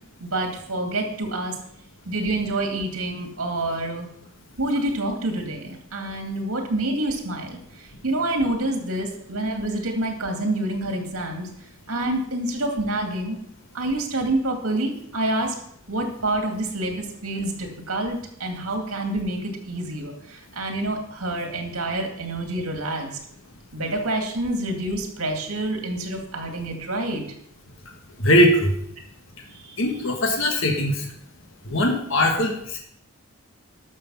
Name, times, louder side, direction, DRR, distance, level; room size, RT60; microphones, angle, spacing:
voice 1, 0.2-1.6 2.1-4.1 4.6-11.5 11.9-13.4 13.7-15.5 15.9-23.2 23.7-27.2 29.5-29.8, right 1 dB, 70° right, 4 dB, 2.4 m, -27 dB
voice 2, 28.2-28.7 29.8-31.1 31.6-32.8, equal, 60° left, 2 dB, 1.6 m, -20 dB
12.0 x 6.7 x 5.6 m, 0.71 s
head